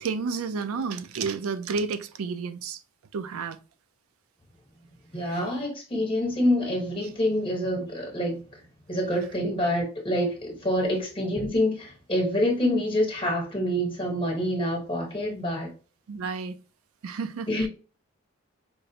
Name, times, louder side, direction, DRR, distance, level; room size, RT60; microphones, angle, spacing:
voice 1, 0.0-2.8 3.1-3.6 5.2-5.4 10.8-11.0 16.1-16.6 17.0-17.7, right 5 dB, 80° right, 0.4 m, -31 dB
voice 2, 5.1-8.4 8.9-15.7 17.5-17.7, left 1 dB, 25° left, 1.1 m, -26 dB
4.5 x 2.0 x 2.7 m
head